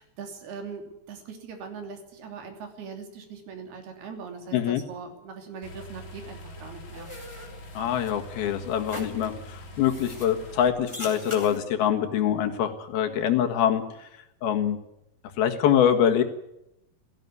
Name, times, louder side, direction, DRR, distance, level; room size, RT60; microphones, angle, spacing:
voice 1, 0.0-7.1, right 5 dB, 80° right, 5 dB, 5.0 m, -41 dB
sound 1, 5.6-10.7, left 1 dB, 50° left, 4.2 m, -44 dB
sound 2, 6.6-11.6, left 1 dB, 10° left, 3.4 m, -43 dB
voice 2, 7.8-13.8 14.4-14.8 15.4-16.2, left 9 dB, 75° left, 5 dB, 3.5 m, -24 dB
17.0 x 16.5 x 9.4 m, 0.83 s
omnidirectional pair, 4.5 m